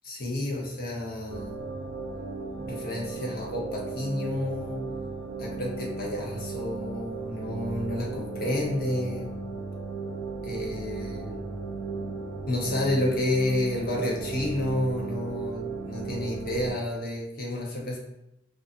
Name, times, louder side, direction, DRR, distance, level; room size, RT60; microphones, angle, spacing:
voice 1, 0.0-1.6 2.6-4.8 5.4-9.3 10.4-11.4 12.5-18.0, left 1 dB, 50° left, -2 dB, 0.7 m, -30 dB
sound 1, 1.3-16.7, right 4 dB, 85° right, 0.4 m, -35 dB
2.4 x 2.4 x 2.4 m, 0.86 s
head